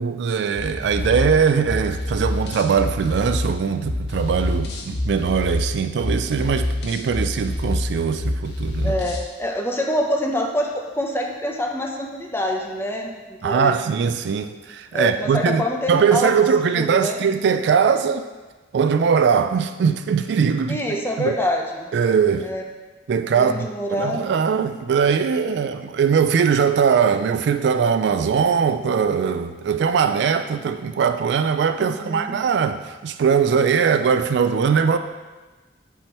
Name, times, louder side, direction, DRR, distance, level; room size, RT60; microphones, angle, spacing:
voice 1, 0.0-8.9 13.4-18.3 18.7-20.8 21.2-21.4 21.9-22.5 23.1-35.0, right 6 dB, 70° right, 9 dB, 0.3 m, -21 dB
sound 1, 0.5-9.3, left 1 dB, 65° left, 0.8 m, -27 dB
voice 2, 8.8-13.8 14.9-16.3 16.7-17.2 20.7-21.9 22.4-22.6 23.3-24.2 31.8-32.4, left 1 dB, 15° left, 1 dB, 0.6 m, -26 dB
7.8 x 4.4 x 3.0 m, 1.2 s
head